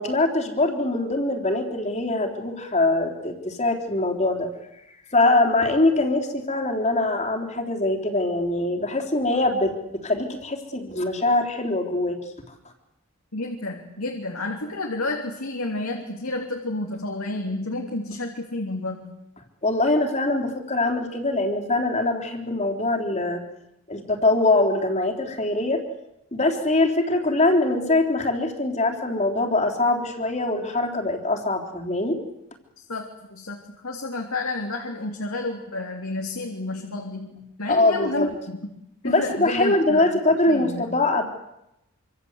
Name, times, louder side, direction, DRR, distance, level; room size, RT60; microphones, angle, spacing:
voice 1, 0.0-4.5 5.1-12.2 19.6-23.4 23.9-25.8 26.3-32.2 37.7-38.3 39.0-41.2, left 2 dB, 30° left, 4 dB, 3.6 m, -23 dB
voice 2, 13.3-19.1 32.8-38.6 39.0-40.2 40.5-40.8, left 2 dB, 75° left, 2 dB, 3.5 m, -30 dB
26.5 x 26.0 x 8.3 m, 0.86 s
head